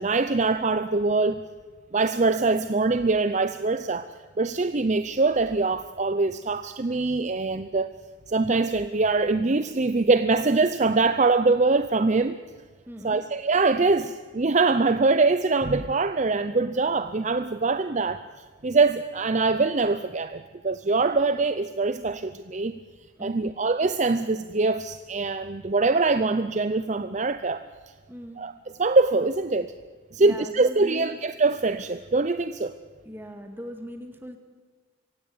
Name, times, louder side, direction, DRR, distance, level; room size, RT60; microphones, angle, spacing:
voice 1, 0.0-1.4 1.9-4.1 4.4-7.9 8.3-12.4 13.0-18.2 18.6-22.8 23.2-27.7 28.4-28.5 28.8-29.7 30.1-32.8, right 3 dB, 35° right, 11 dB, 0.6 m, -23 dB
voice 2, 12.9-13.2 23.2-23.5 28.1-28.4 30.2-31.2 33.1-34.4, equal, 10° right, 5 dB, 2.1 m, -39 dB
24.0 x 16.5 x 8.7 m, 1.5 s
head